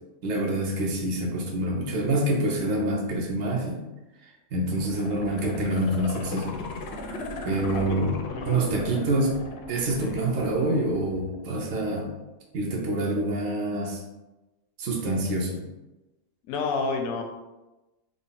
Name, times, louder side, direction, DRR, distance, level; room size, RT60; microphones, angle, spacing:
voice 1, 0.2-3.8 4.5-6.6 7.4-8.2 8.5-9.4 9.7-12.1 12.5-14.0 14.8-15.7, right 1 dB, 75° right, -1 dB, 1.1 m, -26 dB
sound 1, 4.7-11.7 12.1-12.2, left 2 dB, 65° left, 0.7 m, -38 dB
voice 2, 8.3-9.0 10.0-10.2 16.5-17.2, left 4 dB, 90° left, 3 dB, 1.0 m, -30 dB
3.7 x 2.0 x 3.8 m, 1.1 s
omnidirectional pair, 1.4 m